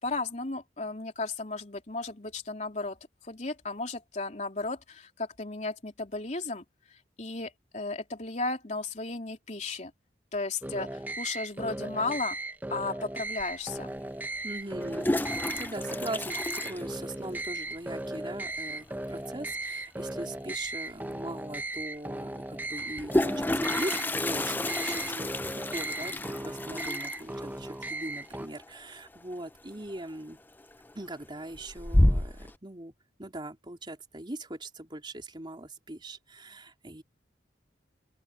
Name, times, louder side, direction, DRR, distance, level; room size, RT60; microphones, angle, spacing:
voice 1, 0.0-3.0 3.2-6.6 7.2-9.9 10.3-12.4 12.7-13.9, left 3 dB, 40° left, 3.4 m, -34 dB
sound 1, 10.6-28.5, right 2 dB, 10° right, 0.8 m, -37 dB
Toilet flush, 13.4-13.5 14.7-17.5 17.8-17.9 18.2-18.3 18.5-18.9 20.6-20.7 21.1-21.2 22.7-29.4 29.7-30.2 30.6-31.1 31.5-32.5, left 1 dB, 10° left, 0.5 m, -30 dB
voice 2, 14.4-25.3 25.5-30.4 30.9-32.9 33.2-37.0, right 1 dB, 25° right, 3.5 m, -41 dB
open air
head